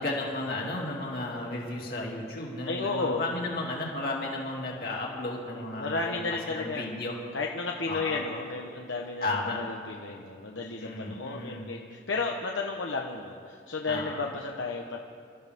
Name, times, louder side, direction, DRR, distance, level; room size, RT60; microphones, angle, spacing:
voice 1, 0.0-6.2 6.5-7.1 7.9-8.2 9.2-9.6 10.8-11.6 13.9-14.2, left 2 dB, 50° left, -2 dB, 2.7 m, -33 dB
voice 2, 2.7-3.5 5.8-7.0 7.3-15.0, left 3 dB, 85° left, 0 dB, 1.0 m, -33 dB
28.0 x 13.5 x 3.6 m, 2.2 s
head